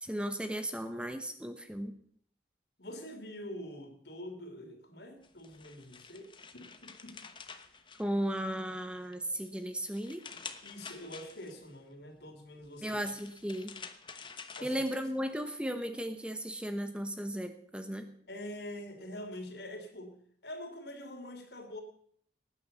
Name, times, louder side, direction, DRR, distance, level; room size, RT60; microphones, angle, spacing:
voice 1, 0.0-1.9 8.0-10.2 12.8-13.7 14.6-18.1, equal, 5° right, 7 dB, 1.0 m, -35 dB
voice 2, 2.8-7.2 10.6-13.0 14.6-14.8 18.3-20.2 20.4-21.8, left 1 dB, 70° left, 6 dB, 3.2 m, -45 dB
sound 1, 5.2-8.6 9.0-11.7 12.6-15.3, left 5 dB, 25° left, 1.0 m, -49 dB
19.0 x 9.7 x 6.9 m, 0.64 s
head